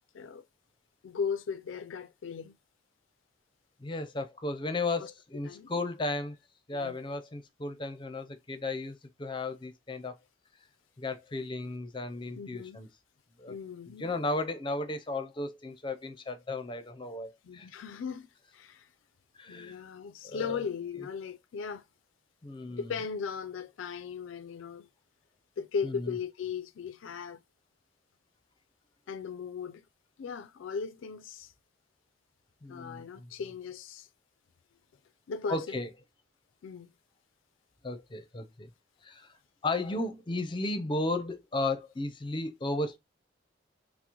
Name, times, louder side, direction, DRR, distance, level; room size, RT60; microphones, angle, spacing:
voice 1, 1.0-2.5 5.0-5.1 5.4-5.9 6.7-7.0 12.3-12.8 13.5-14.1 17.4-18.3 18.5-18.9 19.5-21.8 22.7-24.9 25.6-27.4 29.1-29.8 30.2-31.5 32.7-34.1 35.3-35.8 36.6-36.9, left 6 dB, 90° left, 0.4 m, -37 dB
voice 2, 3.8-6.4 6.7-10.2 11.0-12.9 13.4-13.5 14.0-17.7 19.3-19.8 20.2-20.6 21.0-21.1 22.4-22.9 25.8-26.1 32.6-33.3 35.5-35.9 37.8-38.7 39.0-39.3 39.6-43.0, left 2 dB, 25° left, 0.5 m, -34 dB
5.9 x 2.0 x 2.9 m
head